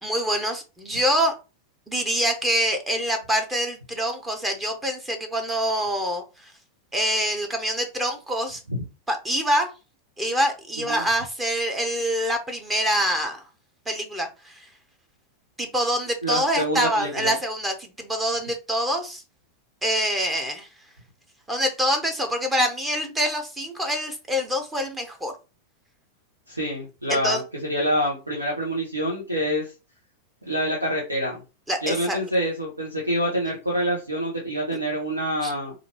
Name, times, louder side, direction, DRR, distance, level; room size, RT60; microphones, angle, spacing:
voice 1, 0.0-1.3 1.9-6.5 6.9-8.6 9.1-9.7 10.2-13.4 13.9-14.7 15.6-19.2 19.8-20.7 21.5-25.3 27.1-27.4 31.7-32.2 35.4-35.5, equal, 10° right, 0.8 m, -25 dB
voice 2, 16.2-17.3 26.5-29.7 30.4-31.4 31.8-35.7, equal, 80° right, 1.0 m, -26 dB
4.3 x 2.6 x 3.0 m
figure-of-eight pair, 90°, 0 cm